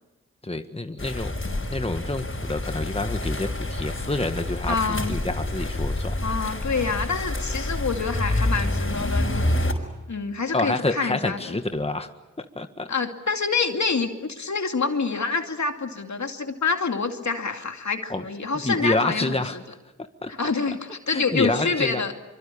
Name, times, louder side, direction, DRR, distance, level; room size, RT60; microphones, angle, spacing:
voice 1, 0.4-1.4 1.7-6.2 10.5-12.1 12.4-12.9 18.1-18.2 18.6-19.6 20.2-20.3 21.1-22.0, left 2 dB, 20° left, 7 dB, 1.7 m, -28 dB
sound 1, 1.0-9.7, left 1 dB, 40° left, 5.5 m, -27 dB
voice 2, 4.7-5.2 6.2-9.5 10.1-11.6 12.9-19.6 20.3-22.1, left 4 dB, 65° left, 5 dB, 2.5 m, -27 dB
25.0 x 24.5 x 8.6 m, 1.0 s
cardioid pair, 45°, 31 cm